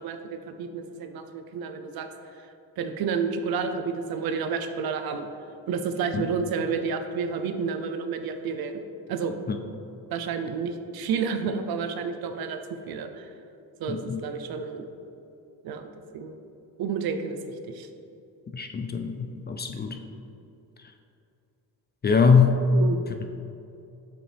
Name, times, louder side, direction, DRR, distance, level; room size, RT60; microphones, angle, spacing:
voice 1, 0.0-2.1 2.8-5.3 5.7-8.8 9.1-9.3 10.1-13.3 13.8-14.9 15.6-15.9 16.1-16.4 16.8-17.9 22.7-23.0, right 5 dB, 70° right, 7 dB, 0.6 m, -30 dB
voice 2, 13.9-14.2 18.5-20.0 22.0-22.6, left 5 dB, 25° left, 6 dB, 0.4 m, -22 dB
7.2 x 5.2 x 3.3 m, 2.7 s
cardioid pair, 110°, 38 cm